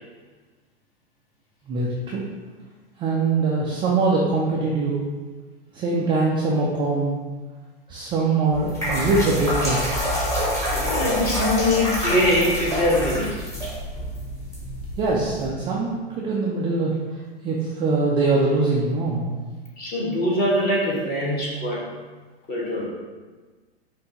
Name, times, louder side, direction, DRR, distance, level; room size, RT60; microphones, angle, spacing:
voice 1, 1.7-2.2 3.0-5.0 5.7-7.2 7.9-10.1 15.0-16.9 17.4-19.3, right 3 dB, 15° right, -4 dB, 0.3 m, -23 dB
sound 1, 8.5-15.5, equal, 10° left, 1.2 m, -27 dB
voice 2, 10.7-13.3 19.8-21.9 22.5-22.8, left 1 dB, 30° left, -5 dB, 1.5 m, -22 dB
5.4 x 2.6 x 2.9 m, 1.3 s
hypercardioid pair, 110°, 31 cm